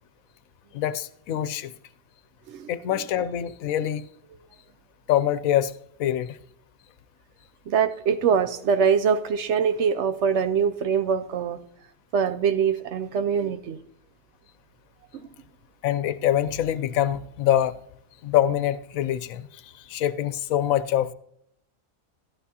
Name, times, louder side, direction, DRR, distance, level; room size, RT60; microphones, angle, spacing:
voice 1, 0.7-1.7 2.7-4.1 5.1-5.7 6.0-6.4 15.8-17.7 18.2-19.6 19.9-21.1, left 11 dB, 80° left, 1.0 m, -24 dB
voice 2, 7.7-11.6 12.1-13.8, right 7 dB, 65° right, 0.8 m, -23 dB
12.0 x 11.5 x 2.8 m
omnidirectional pair, 1.4 m